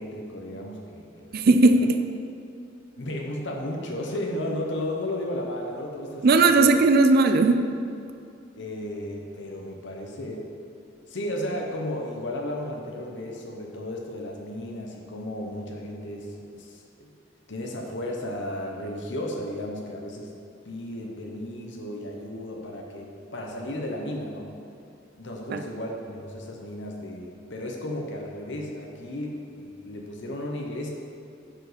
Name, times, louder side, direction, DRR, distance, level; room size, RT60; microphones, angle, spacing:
voice 1, 0.0-1.4 1.7-1.9 3.0-6.7 8.5-10.5 11.1-17.1 17.5-20.3 20.6-24.5 25.1-30.9, left 1 dB, 70° left, 0 dB, 0.9 m, -34 dB
voice 2, 1.3-2.0 6.2-7.7 25.5-25.6, right 3 dB, 55° right, 8 dB, 0.4 m, -18 dB
10.0 x 4.8 x 5.0 m, 2.5 s
head